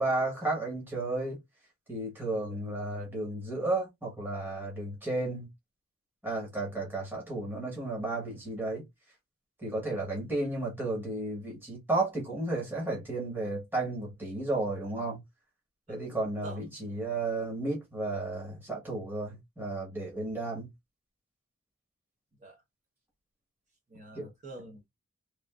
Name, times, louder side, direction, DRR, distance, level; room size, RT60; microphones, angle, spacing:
voice 1, 0.0-1.4 1.9-5.5 6.2-8.8 9.6-15.2 15.9-20.7 24.1-24.3, right 2 dB, 10° right, 1.1 m, -33 dB
voice 2, 15.9-16.6 22.4-22.6 23.9-24.9, right 2 dB, 35° right, 0.9 m, -48 dB
3.2 x 2.5 x 2.4 m
head